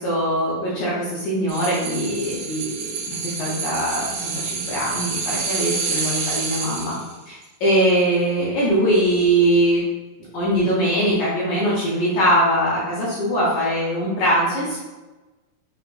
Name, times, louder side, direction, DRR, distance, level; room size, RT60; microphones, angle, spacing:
voice 1, 0.0-6.9 7.3-9.8 10.3-14.8, right 1 dB, 70° left, -7 dB, 2.0 m, -21 dB
sound 1, 1.5-7.1 7.4-7.5, right 5 dB, 75° right, 2.2 m, -28 dB
6.6 x 3.1 x 2.5 m, 1.2 s
omnidirectional pair, 4.2 m